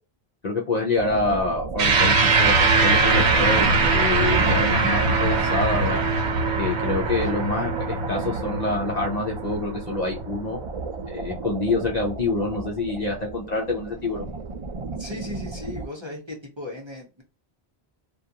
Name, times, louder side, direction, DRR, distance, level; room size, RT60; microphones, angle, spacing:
voice 1, 0.4-6.0 6.6-10.6 11.1-14.3, left 3 dB, 50° left, -1 dB, 0.6 m, -26 dB
sound 1, 0.9-15.9, right 3 dB, 50° right, 0.4 m, -33 dB
sound 2, 1.8-10.5, right 3 dB, 85° right, 0.9 m, -22 dB
voice 2, 14.9-17.2, left 2 dB, 30° right, -1 dB, 0.8 m, -37 dB
2.4 x 2.3 x 2.7 m, 0.29 s
omnidirectional pair, 1.1 m